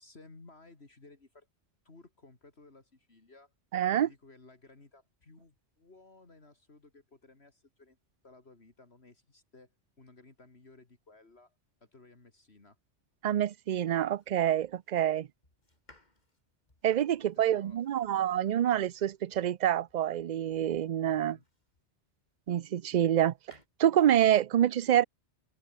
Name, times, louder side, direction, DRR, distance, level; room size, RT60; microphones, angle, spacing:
voice 1, 0.0-1.5 1.8-3.5 3.9-8.0 8.2-9.7 10.0-12.8 17.1-17.8 21.1-21.4, left 3 dB, 60° left, 3.3 m, -57 dB
voice 2, 3.7-4.1 13.2-15.3 16.8-21.4 22.5-25.0, right 11 dB, 55° right, 0.5 m, -27 dB
Domestic sounds home sounds, 13.8-22.0 22.5-23.7, left 1 dB, 40° left, 4.2 m, -65 dB
open air
omnidirectional pair, 1.2 m